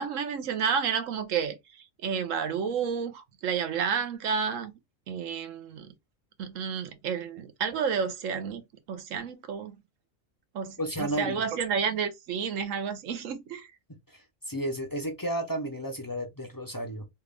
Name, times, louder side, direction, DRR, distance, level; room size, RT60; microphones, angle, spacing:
voice 1, 0.0-1.6 2.0-4.7 5.1-5.9 6.4-9.8 10.5-13.7, right 6 dB, 80° right, 1.1 m, -30 dB
voice 2, 10.8-11.4 14.1-17.0, right 1 dB, 30° left, 0.4 m, -33 dB
3.4 x 2.4 x 3.3 m
omnidirectional pair, 1.3 m